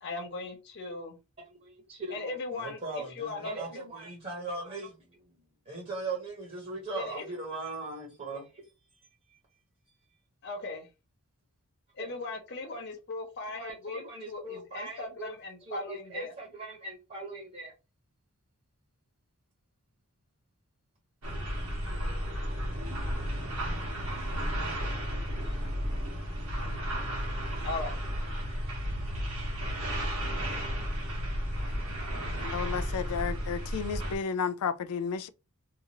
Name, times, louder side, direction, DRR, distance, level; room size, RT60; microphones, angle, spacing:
voice 1, 0.0-1.2 2.1-3.6 6.9-7.2 10.4-10.9 11.9-16.3 27.6-28.0, left 3 dB, 50° left, 0.7 m, -38 dB
voice 2, 1.4-5.4 5.7-8.7 9.3-9.4 12.0-12.2 13.5-15.4 15.6-17.7, right 3 dB, 35° right, 1.0 m, -40 dB
sound 1, 21.2-34.1, equal, 70° right, 1.1 m, -33 dB
voice 3, 32.4-35.3, left 6 dB, 90° left, 0.3 m, -32 dB
2.8 x 2.4 x 2.8 m
head